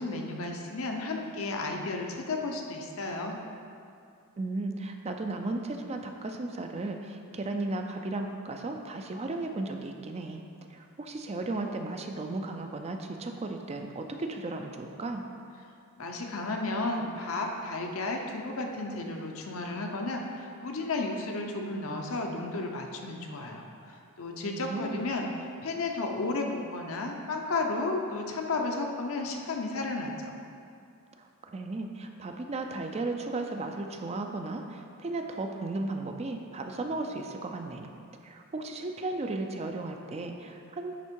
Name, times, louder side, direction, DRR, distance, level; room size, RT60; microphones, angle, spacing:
voice 1, 0.0-3.3 16.0-25.3 25.6-30.4, left 2 dB, 70° left, 2 dB, 0.8 m, -33 dB
voice 2, 4.4-10.4 10.7-15.2 24.4-25.0 31.2-37.9 38.2-40.9, right 2 dB, 30° right, 4 dB, 0.4 m, -35 dB
10.0 x 3.5 x 4.5 m, 2.4 s
head